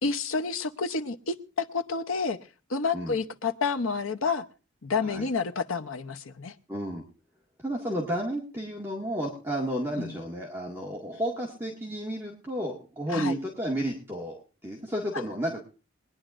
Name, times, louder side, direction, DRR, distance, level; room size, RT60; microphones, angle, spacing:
voice 1, 0.0-2.4 2.7-4.4 4.8-6.5 10.0-10.2 13.1-13.4, left 4 dB, 75° left, 8 dB, 0.8 m, -29 dB
voice 2, 6.7-7.0 7.6-14.3 14.6-15.6, right 1 dB, 10° right, -3 dB, 1.8 m, -32 dB
22.0 x 10.0 x 2.5 m, 0.34 s
head